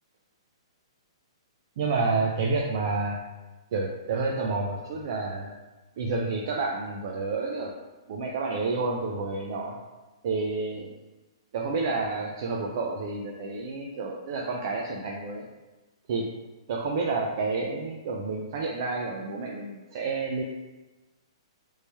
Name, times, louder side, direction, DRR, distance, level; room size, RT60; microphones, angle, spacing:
voice 1, 1.8-3.2 3.7-5.5 6.0-7.7 8.1-9.8 10.2-10.9 11.5-15.4 16.1-16.3 16.7-20.4, right 3 dB, 40° right, -1 dB, 0.4 m, -29 dB
3.1 x 2.7 x 3.3 m, 1.2 s
hypercardioid pair, 170°, 3 cm